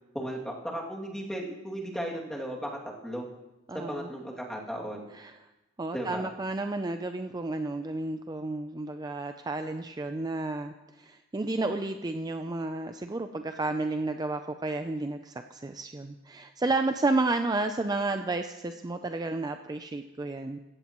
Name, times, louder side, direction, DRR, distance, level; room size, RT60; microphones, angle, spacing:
voice 1, 0.1-2.7 3.0-3.3 3.7-5.1 5.9-6.3, equal, 5° left, -3 dB, 2.4 m, -35 dB
voice 2, 3.7-4.1 5.1-5.3 5.8-20.6, right 2 dB, 20° right, 7 dB, 0.4 m, -31 dB
17.5 x 15.5 x 3.0 m, 1.0 s
head